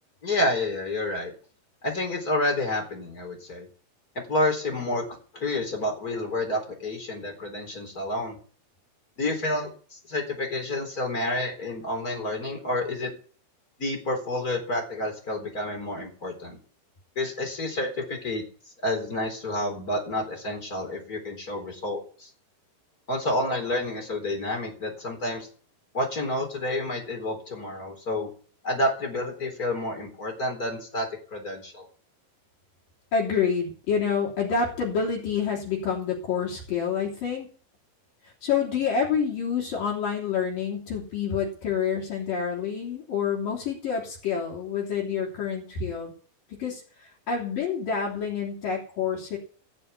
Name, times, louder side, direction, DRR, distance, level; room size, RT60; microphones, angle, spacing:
voice 1, 0.2-1.3 1.8-3.7 4.2-8.4 9.2-13.1 13.8-16.6 17.2-18.4 18.8-22.3 23.1-25.5 25.9-28.3 28.6-31.9, left 1 dB, 20° left, 3 dB, 4.1 m, -29 dB
voice 2, 33.1-37.5 38.4-46.1 46.5-46.8 47.3-49.4, left 6 dB, 55° left, -4 dB, 4.8 m, -28 dB
16.5 x 7.0 x 8.3 m, 0.42 s
omnidirectional pair, 4.7 m